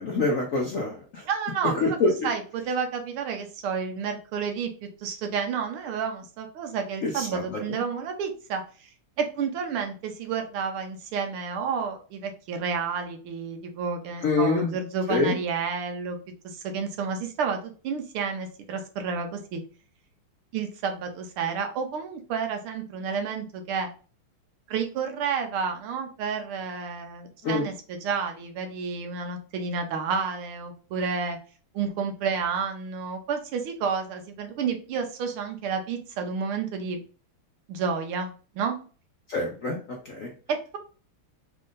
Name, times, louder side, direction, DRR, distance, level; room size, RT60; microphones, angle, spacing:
voice 1, 0.0-1.2 1.7-2.3 7.0-7.8 14.2-14.8 15.1-15.4 27.4-27.7 39.3-39.8 40.0-40.3, left 3 dB, 65° left, 0 dB, 0.8 m, -26 dB
voice 2, 1.3-1.8 2.2-8.9 9.2-16.2 16.4-19.6 20.5-23.9 24.7-31.4 31.7-37.0 37.7-38.8 40.5-40.8, right 6 dB, 80° right, 5 dB, 1.7 m, -30 dB
4.3 x 2.6 x 3.7 m, 0.37 s
omnidirectional pair, 2.4 m